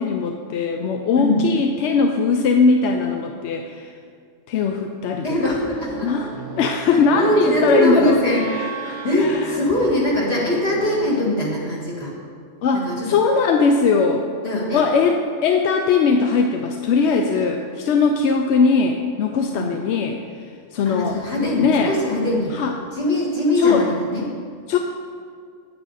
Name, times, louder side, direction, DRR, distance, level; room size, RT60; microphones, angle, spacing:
voice 1, 0.0-3.9 4.5-5.5 6.0-6.3 6.6-8.2 8.5-9.5 12.6-14.2 14.7-20.2 20.7-21.2 21.6-22.0 22.5-22.7 23.6-23.9 24.7-24.8, left 5 dB, 65° left, 4 dB, 0.8 m, -20 dB
voice 2, 5.2-6.1 6.9-12.1 12.8-13.2 14.4-14.9 19.5-19.8 20.9-22.5 22.9-24.3, left 1 dB, 50° left, -6 dB, 2.2 m, -22 dB
sound 1, 5.8-11.2, right 5 dB, 65° right, 1.1 m, -36 dB
8.9 x 8.6 x 4.0 m, 2.2 s
omnidirectional pair, 1.4 m